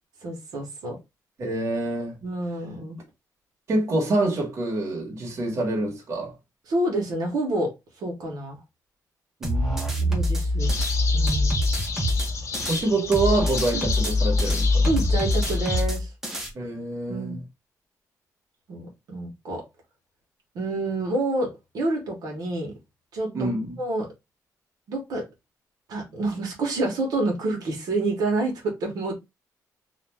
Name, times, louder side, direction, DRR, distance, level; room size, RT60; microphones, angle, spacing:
voice 1, 0.2-1.0 2.2-3.0 6.7-8.6 10.0-10.7 11.1-11.6 13.7-13.9 14.8-16.1 17.1-17.4 18.7-19.6 20.5-22.7 23.1-24.1 24.9-25.2 25.9-29.2, right 2 dB, 75° right, 0.9 m, -28 dB
voice 2, 1.4-2.1 3.7-6.3 9.4-10.1 12.7-14.9 16.5-17.4 23.3-23.7, right 2 dB, 45° right, 1.1 m, -26 dB
sound 1, 9.4-12.8 13.1-16.5, left 1 dB, 5° right, 0.7 m, -24 dB
sound 2, 10.6-15.8, left 4 dB, 50° left, 0.6 m, -32 dB
2.5 x 2.1 x 3.2 m
wide cardioid pair, 160°, 7 cm